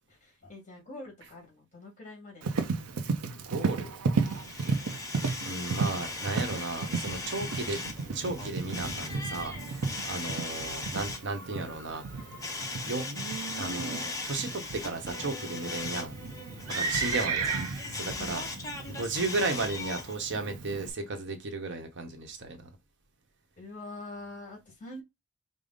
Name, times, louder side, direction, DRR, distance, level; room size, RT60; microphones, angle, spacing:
voice 1, 0.1-2.5 4.7-5.0 7.4-8.0 10.2-11.2 17.1-17.6 18.1-19.0 23.6-25.0, left 2 dB, 35° left, 1.8 m, -47 dB
Livestock farm animals working animals, 2.4-20.9, right 4 dB, 85° right, 0.6 m, -34 dB
voice 2, 3.5-3.9 4.5-4.6 5.4-7.8 8.1-12.3 12.8-13.1 13.5-16.2 16.7-17.6 17.9-18.4 18.9-22.7, right 3 dB, 55° right, 0.9 m, -34 dB
sound 1, 4.2-20.1, left 3 dB, 15° left, 0.7 m, -39 dB
5.1 x 2.0 x 3.8 m
head